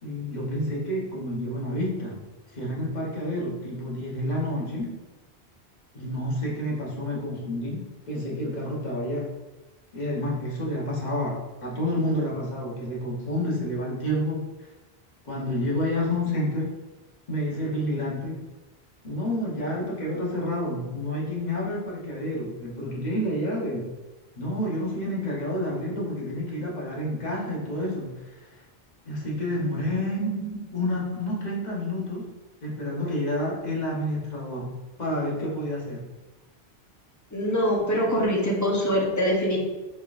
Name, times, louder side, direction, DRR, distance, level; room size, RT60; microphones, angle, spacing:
voice 1, 0.0-2.2 2.5-5.0 5.9-9.3 9.9-14.7 15.2-16.7 17.3-18.4 19.0-23.9 24.4-28.6 29.0-30.4 30.7-32.3 32.6-36.0, left 1 dB, 45° left, -4 dB, 1.1 m, -29 dB
voice 2, 37.3-39.6, equal, 20° left, -2 dB, 0.7 m, -24 dB
4.2 x 3.5 x 2.5 m, 1.1 s
omnidirectional pair, 1.1 m